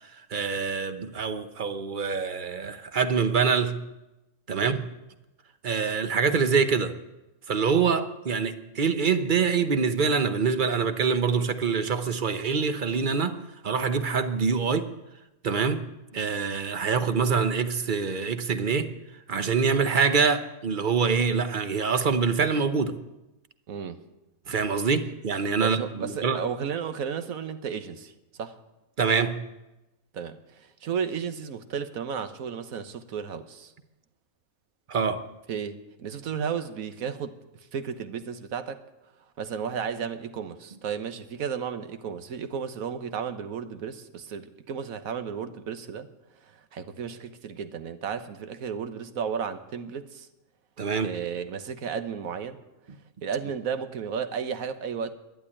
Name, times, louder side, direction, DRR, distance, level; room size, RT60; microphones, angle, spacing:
voice 1, 0.3-3.8 4.5-4.9 5.6-7.0 7.5-14.9 15.4-15.9 16.1-18.9 19.3-23.0 24.5-26.4 29.0-29.4 34.9-35.2 50.8-51.1, right 5 dB, 40° right, 10 dB, 0.9 m, -25 dB
voice 2, 23.7-24.0 25.6-28.6 30.1-33.7 35.5-37.4 37.7-38.8 39.4-46.1 46.5-50.3 51.0-52.6 53.2-55.1, right 7 dB, 80° right, 11 dB, 1.4 m, -33 dB
11.5 x 11.0 x 9.9 m, 0.99 s
omnidirectional pair, 1.4 m